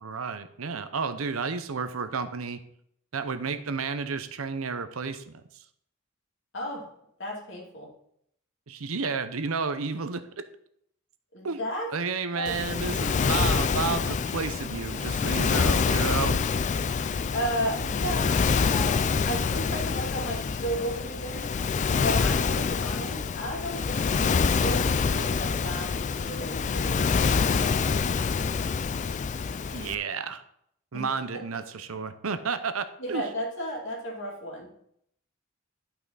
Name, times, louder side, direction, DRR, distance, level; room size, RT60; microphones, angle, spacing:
voice 1, 0.0-2.6 3.1-5.6 8.7-10.2 11.4-11.6 11.9-16.4 29.7-30.4 30.9-33.2, right 5 dB, 90° right, 11 dB, 0.8 m, -31 dB
voice 2, 6.5-6.9 7.2-7.9 11.3-11.9 12.3-12.7 17.3-21.5 22.0-27.7 30.9-31.6 33.0-34.7, equal, 60° left, -1 dB, 2.6 m, -34 dB
Waves surf, 12.4-29.9, left 5 dB, 35° left, 0.3 m, -26 dB
11.0 x 5.8 x 4.0 m, 0.71 s
head